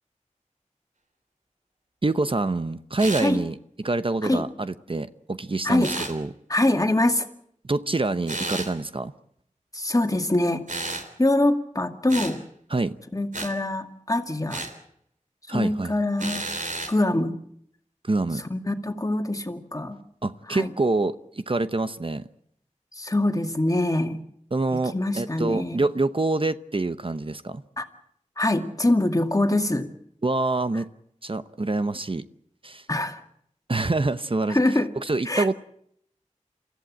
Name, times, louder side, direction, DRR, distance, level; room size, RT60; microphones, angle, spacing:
voice 1, 2.0-6.3 7.6-9.1 12.7-13.0 15.5-15.9 18.0-18.4 20.2-22.2 24.5-27.6 30.2-30.9 31.2-32.3 32.6-32.8 33.7-34.6 35.0-35.5, right 2 dB, 45° right, 12 dB, 0.9 m, -26 dB
sound 1, 3.0-3.3 5.8-6.1 8.3-8.7 10.7-11.1 12.1-12.4 13.3-13.5 14.5-14.7 16.2-16.9, right 2 dB, 85° right, 3.5 m, -31 dB
voice 2, 5.6-6.1 6.5-7.2 9.7-10.6 11.2-12.4 13.1-14.6 15.5-16.5 16.9-17.4 18.5-20.0 20.5-20.7 23.0-24.2 24.9-25.8 27.8-27.9 28.4-29.9 32.9-33.2 34.5-34.9 35.3-35.5, left 1 dB, 25° left, 6 dB, 2.2 m, -24 dB
28.5 x 14.5 x 8.7 m, 0.71 s
wide cardioid pair, 60°, 13 cm